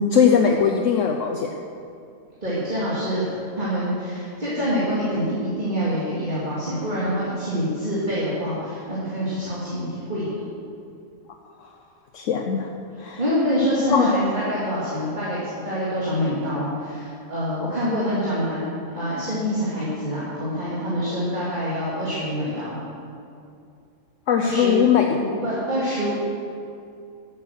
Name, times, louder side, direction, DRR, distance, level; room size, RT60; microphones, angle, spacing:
voice 1, 0.0-1.5 12.1-12.7 13.0-13.2 13.9-14.2 24.3-25.1, left 7 dB, 65° left, 3 dB, 1.1 m, -20 dB
voice 2, 2.4-10.4 12.9-18.7 18.9-22.8 24.4-24.7 25.1-26.2, equal, 30° right, -8 dB, 2.8 m, -26 dB
14.0 x 8.6 x 6.5 m, 2.5 s
omnidirectional pair, 1.5 m